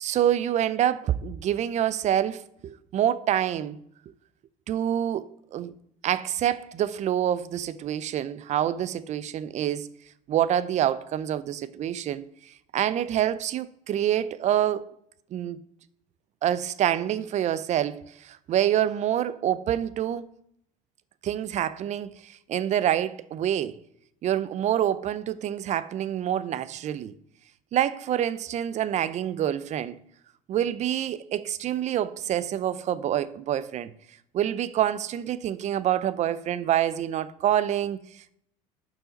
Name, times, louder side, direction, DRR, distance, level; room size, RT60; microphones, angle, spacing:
voice 1, 0.0-3.8 4.7-5.2 5.5-5.7 6.0-9.9 10.3-12.2 12.7-14.9 15.3-15.6 16.4-20.3 21.2-23.8 24.2-27.1 27.7-30.0 30.5-33.9 34.3-38.3, right 11 dB, 45° right, 0.5 m, -26 dB
8.2 x 5.6 x 3.9 m
supercardioid pair, 85°, 17 cm